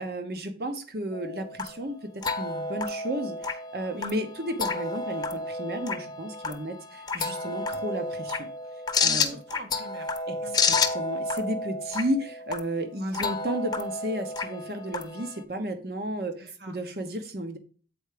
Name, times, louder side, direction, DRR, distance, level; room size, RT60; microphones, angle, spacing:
voice 1, 0.0-2.0 2.2-8.5 9.0-9.4 10.3-10.4 10.7-17.6, right 1 dB, 60° right, 7 dB, 1.1 m, -33 dB
sound 1, 1.1-15.4, left 4 dB, 25° left, 0.8 m, -31 dB
voice 2, 9.0-11.0 13.0-13.4 16.4-16.8, right 2 dB, 75° right, 4 dB, 1.6 m, -45 dB
8.2 x 4.6 x 5.0 m, 0.40 s
head